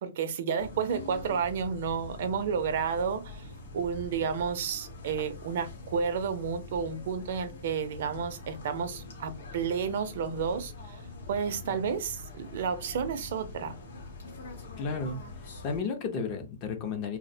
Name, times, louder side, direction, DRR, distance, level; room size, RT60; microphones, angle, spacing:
voice 1, 0.0-3.5 3.7-11.0 11.3-13.7, right 6 dB, 55° right, 0.4 m, -31 dB
sound 1, 0.6-15.8, left 3 dB, 75° left, 0.8 m, -44 dB
voice 2, 14.8-15.2 15.6-17.2, left 5 dB, 30° left, 0.5 m, -33 dB
2.4 x 2.0 x 2.6 m
hypercardioid pair, 155°, 0 cm